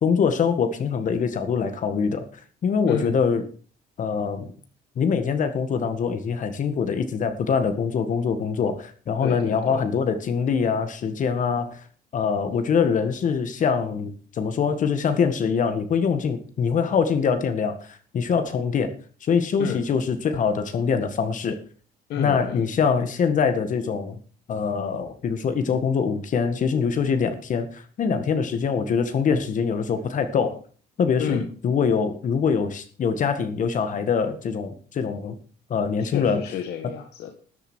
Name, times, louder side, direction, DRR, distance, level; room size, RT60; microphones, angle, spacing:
voice 1, 0.0-2.3 2.6-3.4 4.0-4.5 5.0-11.8 12.1-18.9 19.2-21.6 22.2-24.2 24.5-30.6 31.0-35.3 35.7-36.4, left 6 dB, 50° left, 8 dB, 1.9 m, -24 dB
voice 2, 9.2-9.8 19.6-19.8 22.1-22.7 31.2-31.4 36.0-37.3, left 8 dB, 75° left, 4 dB, 1.9 m, -31 dB
13.0 x 7.9 x 6.4 m, 0.42 s
cardioid pair, 110°, 17 cm